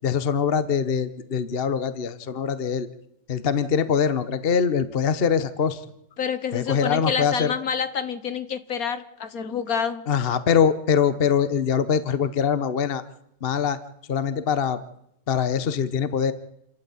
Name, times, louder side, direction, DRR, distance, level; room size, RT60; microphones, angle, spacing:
voice 1, 0.0-2.9 3.3-5.8 6.5-7.5 10.1-13.0 13.4-13.8 14.1-14.8 15.3-16.3, left 7 dB, 40° left, 13 dB, 1.0 m, -23 dB
voice 2, 6.2-10.0, left 7 dB, 55° left, 12 dB, 1.5 m, -28 dB
28.5 x 13.0 x 8.4 m, 0.80 s
omnidirectional pair, 2.0 m